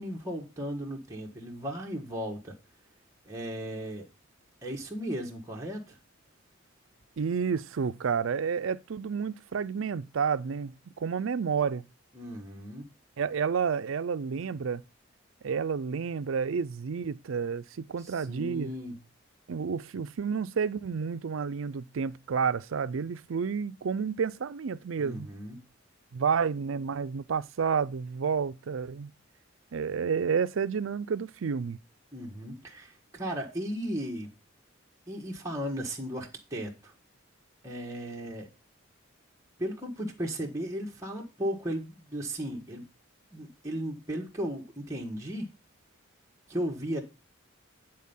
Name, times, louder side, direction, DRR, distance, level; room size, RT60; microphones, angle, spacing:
voice 1, 0.0-2.5 3.2-4.1 4.6-6.0 12.1-12.9 18.0-19.0 25.0-25.6 32.1-34.3 35.1-36.9 37.6-38.5 39.6-42.8 43.3-45.5 46.5-47.0, equal, 15° right, 1.4 m, -36 dB
voice 2, 7.2-11.8 13.2-14.8 15.4-18.7 19.5-25.3 26.1-29.1 29.7-31.8, right 6 dB, 75° right, 0.5 m, -30 dB
9.6 x 4.4 x 5.5 m
head